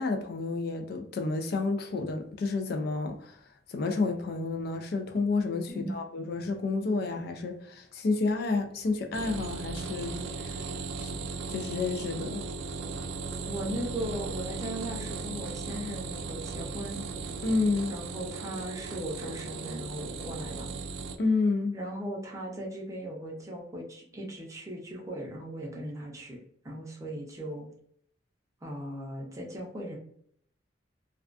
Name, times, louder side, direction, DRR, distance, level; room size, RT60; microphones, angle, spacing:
voice 1, 0.0-3.4 3.7-10.6 11.0-11.1 11.5-12.5 17.4-17.9 21.2-21.8, left 3 dB, 55° left, 0.3 m, -30 dB
sound 1, 9.1-21.2, right 4 dB, 75° right, 0.3 m, -37 dB
voice 2, 13.5-17.0 17.9-20.7 21.7-26.4 26.6-27.7 28.6-30.0, right 1 dB, 15° right, 0.5 m, -38 dB
2.3 x 2.3 x 2.4 m
head